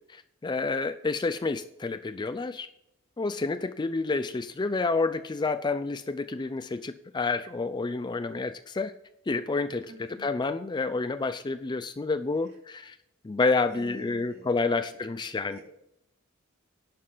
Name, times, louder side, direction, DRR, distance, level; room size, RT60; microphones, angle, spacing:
voice 1, 0.1-2.7 3.2-8.9 9.3-13.0 13.2-15.6, left 3 dB, 20° left, 12 dB, 0.4 m, -29 dB
voice 2, 9.9-10.2 13.7-14.8 15.5-15.6, right 1 dB, 50° right, -3 dB, 4.2 m, -46 dB
11.5 x 5.6 x 7.5 m, 0.81 s
head